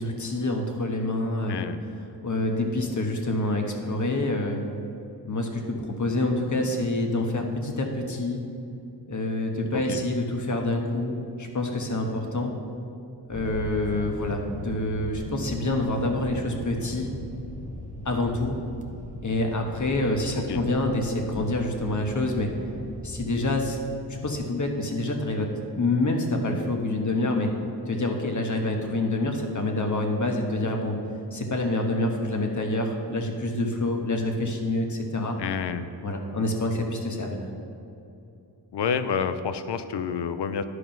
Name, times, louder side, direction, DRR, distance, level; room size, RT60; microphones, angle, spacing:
voice 1, 0.0-1.6 2.2-4.6 5.2-8.4 9.1-12.5 13.3-17.1 18.0-18.6 19.2-22.5 23.0-23.8 24.1-25.5 25.7-27.5 27.9-31.0 31.3-35.4 36.0-37.4, left 2 dB, 45° left, 3 dB, 1.3 m, -27 dB
sound 1, 13.3-23.5, left 1 dB, 20° left, 0.9 m, -39 dB
voice 2, 35.4-35.9 38.7-40.6, left 6 dB, 85° left, 11 dB, 0.6 m, -29 dB
10.5 x 4.9 x 5.9 m, 2.8 s
wide cardioid pair, 75°, 40 cm